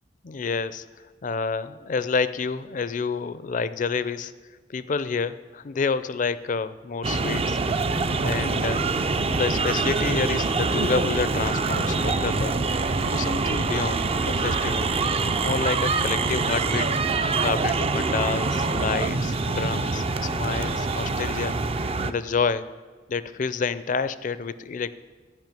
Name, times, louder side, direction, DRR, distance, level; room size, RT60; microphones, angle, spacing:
voice 1, 0.2-0.8 1.2-4.3 4.7-7.6 8.2-8.8 9.2-12.6 13.0-14.9 15.4-17.0 17.4-22.7 23.1-24.9, left 5 dB, 45° left, 15 dB, 0.4 m, -28 dB
sound 1, 7.0-22.1, right 3 dB, 35° right, 0.4 m, -25 dB
12.0 x 5.5 x 9.0 m, 1.3 s
head